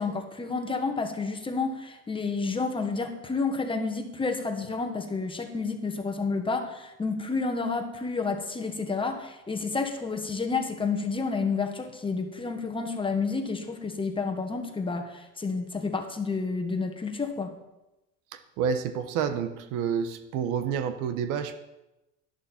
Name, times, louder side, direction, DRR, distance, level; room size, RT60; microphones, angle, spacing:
voice 1, 0.0-17.5, left 4 dB, 15° left, 4 dB, 1.4 m, -30 dB
voice 2, 18.3-21.5, right 7 dB, 60° right, 10 dB, 1.2 m, -29 dB
11.5 x 11.0 x 4.4 m, 0.95 s
supercardioid pair, 110°, 36 cm